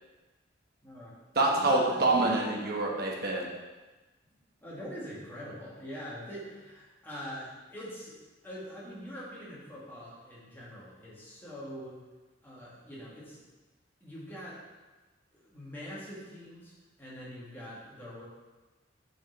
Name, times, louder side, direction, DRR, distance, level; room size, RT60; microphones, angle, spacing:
voice 1, 0.8-1.1 1.4-2.4 4.6-8.2 8.4-12.0 12.4-13.4 14.0-14.6 15.3-16.7 17.0-18.2, equal, 10° left, -8 dB, 1.7 m, -43 dB
voice 2, 1.3-3.5, right 2 dB, 55° right, -1 dB, 1.1 m, -26 dB
5.4 x 4.9 x 4.0 m, 1.2 s
head